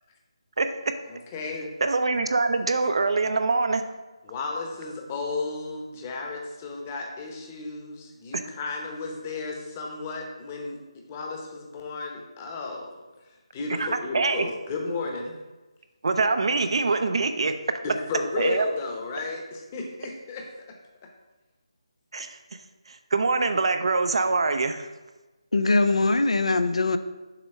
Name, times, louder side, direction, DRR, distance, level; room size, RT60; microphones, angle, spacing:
voice 1, 1.1-1.8 4.2-10.8 11.1-13.0 13.5-15.3 17.8-20.5, left 3 dB, 25° left, 1 dB, 0.9 m, -33 dB
voice 2, 1.8-3.8 8.3-8.4 13.8-13.9 14.1-14.5 16.0-17.8 18.4-18.7 22.1-22.4 22.9-24.9, right 3 dB, 60° right, 8 dB, 0.5 m, -24 dB
voice 3, 25.5-27.0, left 3 dB, 80° left, 10 dB, 0.5 m, -22 dB
6.8 x 3.0 x 5.5 m, 1.2 s
figure-of-eight pair, 160°, 3 cm